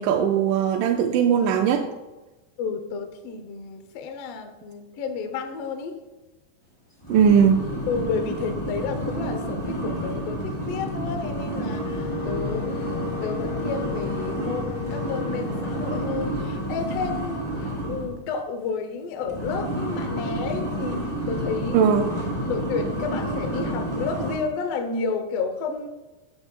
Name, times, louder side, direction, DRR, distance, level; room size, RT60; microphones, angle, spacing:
voice 1, 0.0-1.9 7.1-7.7 21.7-22.1, right 7 dB, 80° right, 4 dB, 2.0 m, -19 dB
voice 2, 2.6-6.0 7.9-17.5 17.8-21.9 22.5-25.9, left 5 dB, 70° left, 6 dB, 1.5 m, -31 dB
sound 1, 7.0-18.2 19.2-24.4, right 1 dB, 10° left, 1.6 m, -30 dB
Wind instrument woodwind instrument, 11.6-16.3, left 10 dB, 90° left, 2.6 m, -36 dB
13.5 x 6.8 x 2.3 m, 1.1 s
omnidirectional pair, 3.8 m